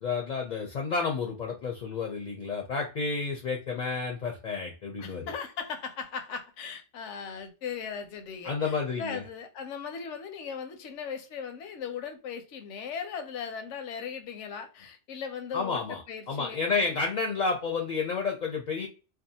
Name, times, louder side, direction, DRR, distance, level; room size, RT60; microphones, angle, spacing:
voice 1, 0.0-5.3 8.4-9.2 15.5-16.0 16.3-18.9, left 4 dB, 55° left, 0.5 m, -30 dB
voice 2, 5.0-17.0, left 6 dB, 80° left, 0.9 m, -38 dB
2.5 x 2.3 x 2.7 m
omnidirectional pair, 1.2 m